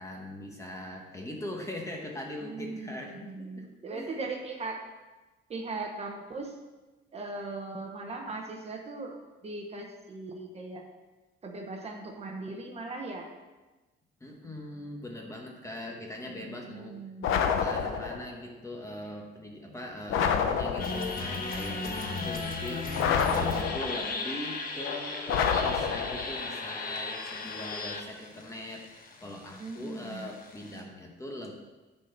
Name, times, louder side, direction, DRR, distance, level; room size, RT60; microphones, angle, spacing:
voice 1, 0.0-3.7 3.9-4.2 14.2-16.9 17.4-31.5, left 1 dB, 15° left, 1 dB, 1.1 m, -41 dB
voice 2, 2.4-4.8 5.5-6.5 7.1-9.1 9.4-10.8 11.4-13.3 16.3-17.4 29.6-30.3, right 3 dB, 30° right, 2 dB, 1.0 m, -39 dB
sound 1, 17.2-18.3 20.1-21.2 23.0-24.1 25.3-26.4, left 7 dB, 90° left, 0.8 m, -28 dB
sound 2, 20.8-30.8, left 3 dB, 45° left, 1.2 m, -36 dB
10.0 x 4.2 x 6.6 m, 1.2 s
cardioid pair, 165°, 20 cm